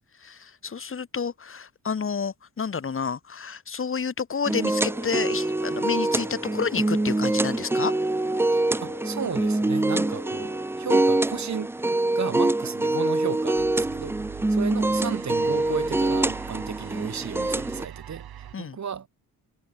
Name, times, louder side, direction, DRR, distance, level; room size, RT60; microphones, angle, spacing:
voice 1, 0.2-7.9 18.5-18.8, left 6 dB, 35° left, 2.6 m, -30 dB
sound 1, 4.5-17.9, right 2 dB, 5° right, 0.4 m, -25 dB
sound 2, 4.7-10.7, left 8 dB, 55° left, 4.3 m, -44 dB
voice 2, 8.5-11.8 12.1-19.1, right 7 dB, 50° right, 4.9 m, -34 dB
sound 3, 13.6-18.5, right 10 dB, 80° right, 2.8 m, -42 dB
wide cardioid pair, 170°, 36 cm